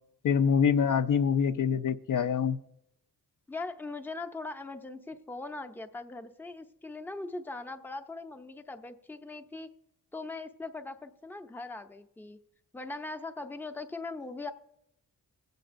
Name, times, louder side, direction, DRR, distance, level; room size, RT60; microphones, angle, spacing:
voice 1, 0.2-2.6, left 7 dB, 60° left, 9 dB, 0.5 m, -25 dB
voice 2, 3.5-9.7 10.1-12.4 12.7-14.5, left 3 dB, 5° left, 7 dB, 0.5 m, -40 dB
16.5 x 7.9 x 2.5 m, 0.78 s
cardioid pair, 95°, 36 cm